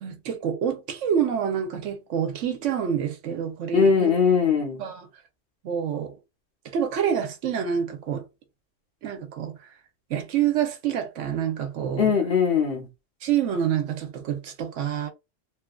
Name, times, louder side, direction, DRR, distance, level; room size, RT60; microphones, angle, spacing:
voice 1, 0.0-4.1 4.8-5.1 5.6-6.1 6.7-8.2 9.0-9.6 10.1-12.1 13.2-15.1, right 8 dB, 75° right, 1.0 m, -27 dB
voice 2, 3.7-4.8 12.0-12.9, left 6 dB, 55° left, 0.8 m, -20 dB
2.9 x 2.4 x 2.2 m
omnidirectional pair, 1.3 m